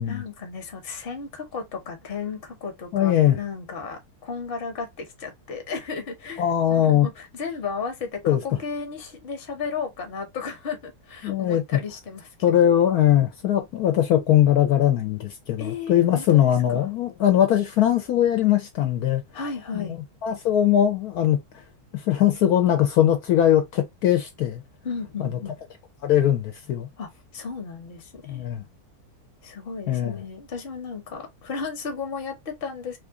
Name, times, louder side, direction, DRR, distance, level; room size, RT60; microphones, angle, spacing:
voice 1, 0.1-6.4 6.7-12.3 15.6-16.9 19.3-20.0 24.8-25.6 27.0-28.4 29.4-33.0, left 5 dB, 40° left, 1.0 m, -34 dB
voice 2, 2.9-3.4 6.4-7.1 8.2-8.4 11.2-11.8 12.4-19.2 19.7-21.4 21.9-24.6 25.2-25.3 26.0-26.9 28.3-28.6 29.9-30.1, left 11 dB, 70° left, 1.1 m, -21 dB
3.1 x 2.5 x 3.5 m
omnidirectional pair, 1.7 m